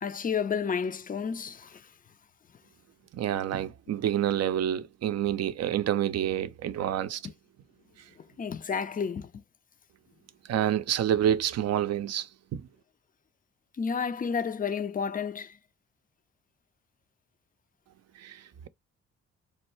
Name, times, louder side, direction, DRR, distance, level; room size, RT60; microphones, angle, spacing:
voice 1, 0.0-1.9 8.2-9.4 13.8-15.6, left 6 dB, 25° left, 0.5 m, -31 dB
voice 2, 3.1-7.2 10.5-12.6 18.2-18.4, right 10 dB, 50° right, 0.5 m, -28 dB
3.5 x 2.2 x 3.0 m
hypercardioid pair, 45°, 33 cm